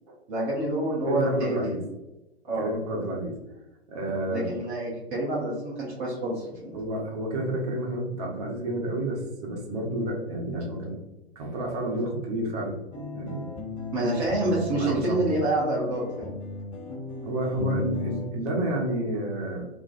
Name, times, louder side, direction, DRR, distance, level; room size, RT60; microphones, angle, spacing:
voice 1, 0.3-1.8 2.5-2.7 4.3-6.8 13.9-16.4, right 1 dB, 15° right, -7 dB, 0.3 m, -27 dB
voice 2, 1.1-1.8 2.5-3.3 3.9-4.5 6.7-10.9 11.4-12.8 13.1-13.5 14.7-15.2 17.2-19.7, right 1 dB, 40° right, -1 dB, 0.7 m, -30 dB
sound 1, 12.9-18.2, left 3 dB, 30° left, 1.0 m, -35 dB
2.4 x 2.3 x 2.3 m, 0.98 s
figure-of-eight pair, 110°, 32 cm